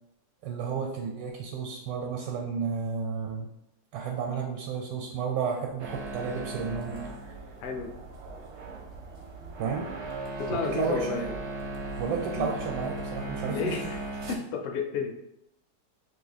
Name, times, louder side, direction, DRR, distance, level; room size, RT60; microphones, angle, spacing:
voice 1, 0.4-3.5 3.9-7.3 9.6-9.9 10.6-11.2 12.0-13.8, right 5 dB, 85° right, 1 dB, 1.2 m, -32 dB
sound 1, 5.8-14.4, right 2 dB, 65° right, 0.7 m, -37 dB
voice 2, 10.4-11.3 12.4-12.5 13.5-14.0 14.3-15.2, left 5 dB, 70° left, 4 dB, 0.9 m, -31 dB
2.8 x 2.6 x 4.1 m, 0.83 s
omnidirectional pair, 1.8 m